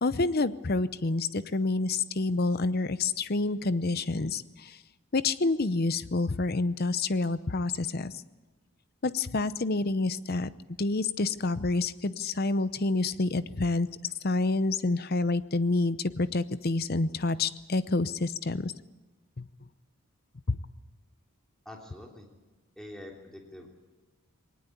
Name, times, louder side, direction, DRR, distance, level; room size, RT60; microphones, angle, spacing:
voice 1, 0.0-4.8 5.1-8.1 9.0-10.5 10.8-13.9 14.2-18.7 19.4-19.5 20.5-20.6, left 3 dB, 45° left, 14 dB, 0.7 m, -28 dB
voice 2, 21.6-22.3 22.8-23.7, left 1 dB, ahead, 0 dB, 3.3 m, -45 dB
21.0 x 19.0 x 8.4 m, 1.2 s
head